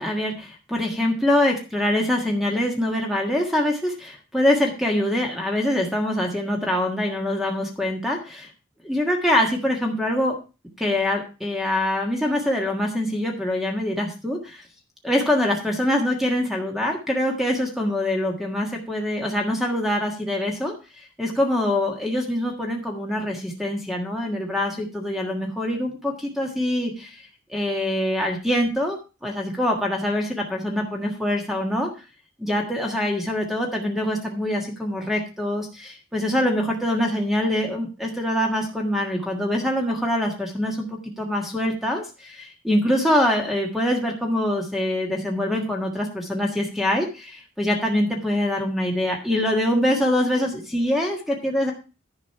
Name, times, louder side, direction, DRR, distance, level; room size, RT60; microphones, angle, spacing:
voice 1, 0.0-8.5 8.8-10.3 10.8-14.6 15.0-27.2 27.5-31.9 32.4-51.7, left 1 dB, ahead, 1 dB, 1.5 m, -24 dB
11.0 x 5.3 x 5.6 m, 0.32 s
head